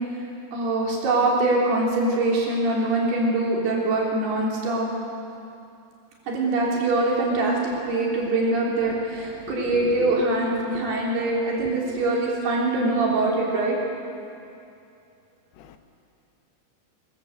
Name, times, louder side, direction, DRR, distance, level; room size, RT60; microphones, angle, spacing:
voice 1, 0.5-4.9 6.3-13.8, right 2 dB, 85° right, -3 dB, 5.4 m, -23 dB
voice 2, 9.5-10.3 15.6-15.8, left 7 dB, 85° left, 7 dB, 3.1 m, -34 dB
23.5 x 15.0 x 8.1 m, 2.6 s
omnidirectional pair, 4.5 m